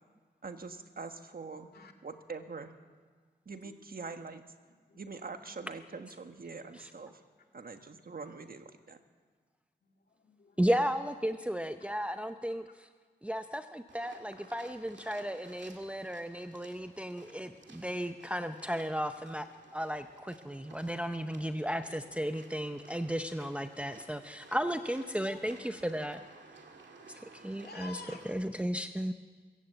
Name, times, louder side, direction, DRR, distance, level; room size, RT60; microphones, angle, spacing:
voice 1, 0.4-1.7 2.0-2.7 3.4-4.4 4.9-7.2 7.5-9.0, right 4 dB, 55° right, 7 dB, 1.4 m, -44 dB
voice 2, 9.8-10.7 11.5-11.9 14.1-14.5 22.9-23.1 27.0-28.2, left 4 dB, 60° left, 3 dB, 2.2 m, -53 dB
voice 3, 10.6-12.9 13.2-19.5 19.7-26.3 27.3-28.0 28.2-29.1, equal, 5° right, 7 dB, 0.7 m, -34 dB
sound 1, 13.9-28.3, right 4 dB, 85° right, 2.2 m, -56 dB
24.5 x 15.5 x 7.9 m, 1.5 s
wide cardioid pair, 115°, 18 cm